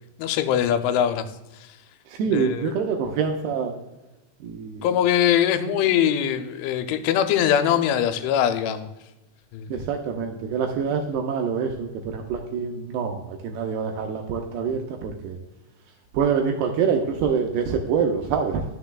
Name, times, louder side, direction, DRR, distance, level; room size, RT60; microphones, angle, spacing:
voice 1, 0.2-1.3 2.3-2.7 4.8-8.9 9.5-9.7, left 10 dB, 90° left, 9 dB, 3.0 m, -22 dB
voice 2, 2.1-3.7 4.4-4.8 9.7-15.4 16.1-18.6, right 6 dB, 85° right, 2 dB, 2.4 m, -25 dB
12.0 x 6.6 x 2.3 m, 1.0 s
omnidirectional pair, 5.3 m